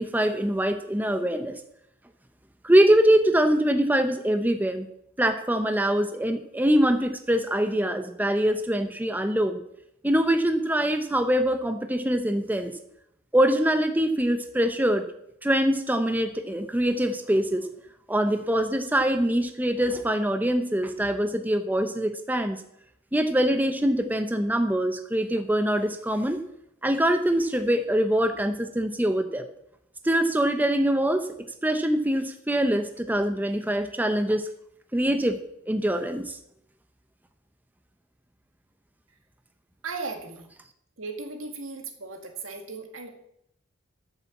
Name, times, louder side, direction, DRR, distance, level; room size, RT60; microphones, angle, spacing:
voice 1, 0.0-1.6 2.6-4.9 5.2-9.6 10.0-12.7 13.3-15.1 15.4-17.7 18.1-22.6 23.1-26.4 26.8-29.4 30.0-31.3 31.6-34.5 34.9-35.4 35.7-36.4, right 1 dB, 10° right, 7 dB, 0.7 m, -23 dB
voice 2, 39.8-40.5 41.0-43.1, right 4 dB, 75° right, 4 dB, 2.2 m, -36 dB
13.0 x 7.0 x 7.3 m, 0.76 s
head